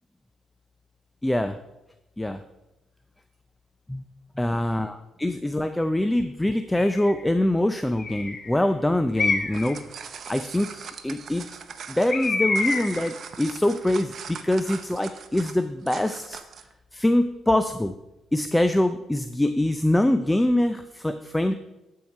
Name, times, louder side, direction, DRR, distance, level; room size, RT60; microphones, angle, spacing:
voice 1, 1.2-1.6 2.2-2.4 3.9-4.0 4.4-9.8 10.3-10.7 11.0-11.5 11.9-16.4 16.9-17.9 18.3-21.5, left 1 dB, 10° left, 9 dB, 0.4 m, -24 dB
Bird, 6.8-7.2 8.0-8.5 9.2-9.8 12.1-13.1, left 3 dB, 45° left, 1.1 m, -27 dB
sound 1, 9.4-16.7, right 6 dB, 55° right, 0.7 m, -40 dB
12.0 x 4.7 x 5.4 m, 0.96 s
cardioid pair, 90°, 0 cm